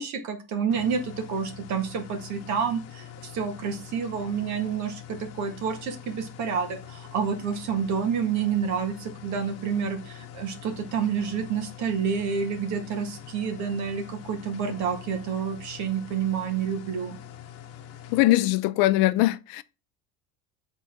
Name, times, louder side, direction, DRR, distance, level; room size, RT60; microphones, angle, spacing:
voice 1, 0.0-17.2, right 6 dB, 55° right, 1.7 m, -29 dB
sound 1, 0.7-18.2, left 10 dB, 45° left, 1.1 m, -44 dB
voice 2, 18.1-19.6, left 17 dB, 70° left, 0.6 m, -21 dB
7.4 x 3.9 x 5.9 m
cardioid pair, 155°, 36 cm